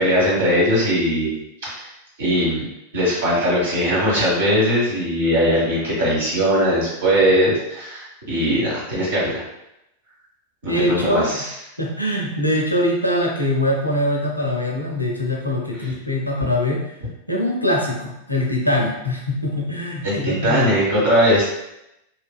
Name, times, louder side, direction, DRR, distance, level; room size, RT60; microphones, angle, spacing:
voice 1, 0.0-1.9 2.2-2.7 2.9-9.4 10.6-11.5 20.0-21.5, equal, 60° right, -6 dB, 1.3 m, -20 dB
voice 2, 10.7-11.5 11.8-16.8 17.3-20.8, left 1 dB, 90° left, -1 dB, 0.5 m, -22 dB
2.7 x 2.5 x 2.3 m, 0.86 s
figure-of-eight pair, 90°, 0 cm